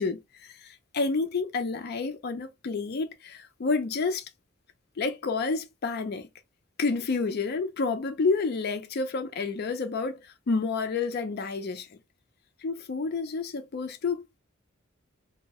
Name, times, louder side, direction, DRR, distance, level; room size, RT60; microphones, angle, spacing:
voice 1, 0.0-4.3 5.0-6.3 6.8-12.0 12.6-14.4, left 4 dB, 50° left, 0.4 m, -29 dB
2.6 x 2.1 x 2.8 m
head